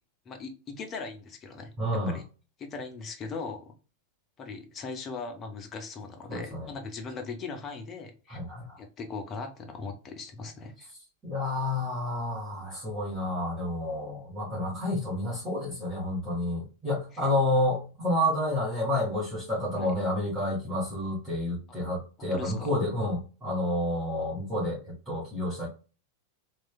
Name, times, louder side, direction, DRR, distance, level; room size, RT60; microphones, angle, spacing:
voice 1, 0.3-2.2 2.6-3.7 4.4-8.4 8.8-10.9 17.1-17.2 19.8-19.9 22.2-22.7, left 4 dB, 25° left, 4 dB, 0.6 m, -39 dB
voice 2, 1.8-2.2 6.3-6.7 8.3-8.8 11.2-25.7, left 1 dB, 20° right, -8 dB, 1.4 m, -30 dB
3.0 x 2.3 x 2.3 m, 0.34 s
figure-of-eight pair, 90°, 0 cm